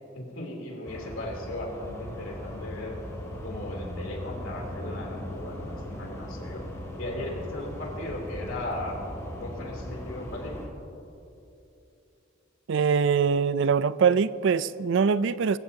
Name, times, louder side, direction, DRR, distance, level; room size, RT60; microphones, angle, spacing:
voice 1, 0.1-3.0 3.4-6.6 6.9-9.0 9.4-10.6, left 1 dB, 80° left, -1 dB, 3.3 m, -37 dB
sound 1, 0.8-10.7, equal, 15° left, 2.4 m, -38 dB
voice 2, 12.7-15.6, right 6 dB, 65° right, 16 dB, 0.4 m, -23 dB
23.0 x 15.0 x 2.8 m, 2.9 s
head